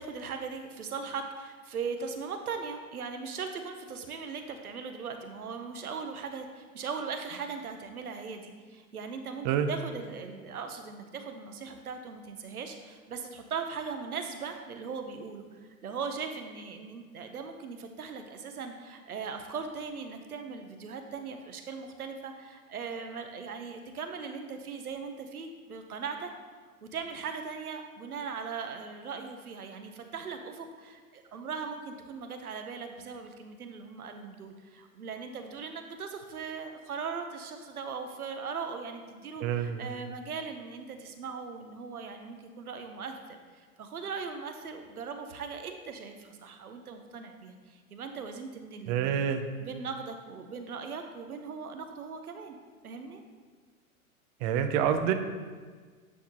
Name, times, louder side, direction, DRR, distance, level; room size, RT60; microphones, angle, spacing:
voice 1, 0.0-26.3 26.8-49.2 49.6-52.6 52.8-53.2, right 5 dB, 85° right, 6 dB, 0.9 m, -39 dB
voice 2, 39.4-39.8 48.9-49.5 54.4-55.1, right 8 dB, 30° right, 8 dB, 0.5 m, -27 dB
9.2 x 5.8 x 2.9 m, 1.5 s
hypercardioid pair, 110°, 43 cm